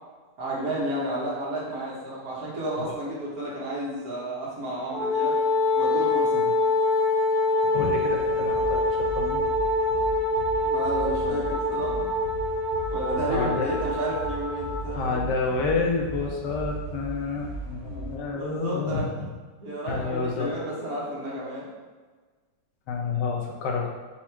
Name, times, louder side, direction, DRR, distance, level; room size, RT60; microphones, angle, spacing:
voice 1, 0.4-5.4 5.7-6.4 10.6-12.0 12.9-15.7 17.2-17.3 17.8-19.0 19.6-21.7, right 1 dB, 60° right, -6 dB, 1.5 m, -32 dB
Wind instrument woodwind instrument, 4.9-14.9, left 2 dB, 35° left, 1.1 m, -25 dB
voice 2, 7.7-9.4 13.3-13.7 14.9-19.1 19.9-20.6 22.9-23.9, left 4 dB, 80° left, 1 dB, 1.3 m, -29 dB
sound 1, 7.8-18.2, right 2 dB, 85° right, 0.5 m, -38 dB
4.3 x 2.3 x 4.4 m, 1.4 s
omnidirectional pair, 1.9 m